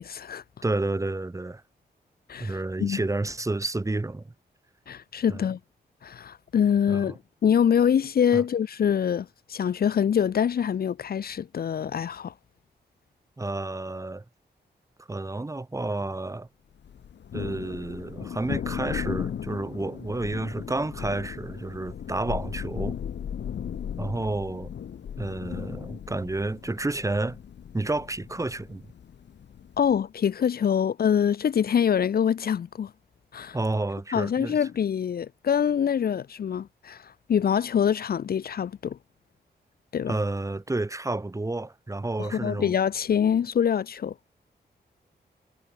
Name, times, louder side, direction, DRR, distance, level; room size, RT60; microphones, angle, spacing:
voice 1, 0.0-0.4 2.3-3.0 4.9-5.6 6.0-7.1 7.4-12.3 29.8-32.9 33.3-33.6 34.1-39.0 39.9-40.2 42.2-44.1, left 8 dB, 60° left, 0.7 m, -25 dB
voice 2, 0.6-1.6 2.4-4.3 5.3-5.5 6.9-7.2 8.3-8.4 13.4-14.2 15.0-16.5 17.3-23.0 24.0-24.7 25.2-27.4 27.7-28.9 33.5-34.6 40.1-42.8, right 2 dB, 20° right, 1.9 m, -30 dB
Thunder, 16.8-30.0, left 8 dB, 85° left, 2.0 m, -36 dB
wide cardioid pair, 130°, 18 cm